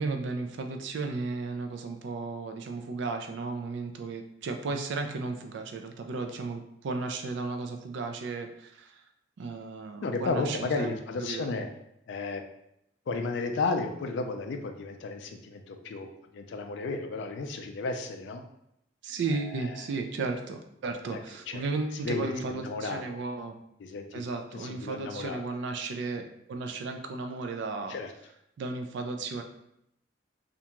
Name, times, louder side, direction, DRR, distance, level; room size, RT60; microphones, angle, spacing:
voice 1, 0.0-9.0 9.4-11.5 19.0-23.6 24.1-28.0 28.6-29.4, right 3 dB, 65° right, 5 dB, 0.3 m, -34 dB
voice 2, 10.0-11.7 12.1-12.4 13.1-18.4 19.3-19.8 21.0-21.2 21.5-21.6 22.0-23.2 23.8-24.2 24.5-25.4 27.9-28.1, left 3 dB, 70° left, 5 dB, 0.3 m, -33 dB
2.5 x 2.2 x 2.9 m, 0.78 s
head